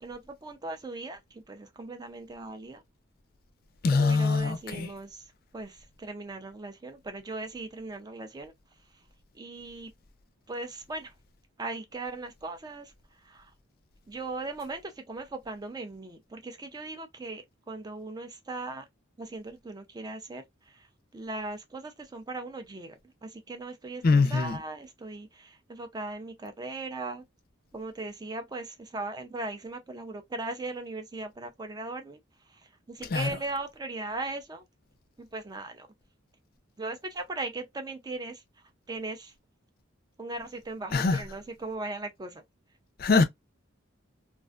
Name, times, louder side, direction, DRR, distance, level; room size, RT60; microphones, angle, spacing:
voice 1, 0.0-2.8 3.9-5.3 5.5-8.5 9.3-9.9 10.5-11.1 11.6-12.9 13.2-13.5 14.1-18.9 19.2-20.9 21.1-27.2 27.7-32.2 32.5-34.7 35.2-35.9 36.8-38.4 38.9-39.3 40.2-42.4, right 2 dB, 20° right, 0.4 m, -38 dB
voice 2, 3.8-4.9 24.0-24.6 33.1-33.3 40.9-41.2 43.0-43.2, left 4 dB, 45° left, 0.4 m, -23 dB
2.4 x 2.3 x 2.3 m
head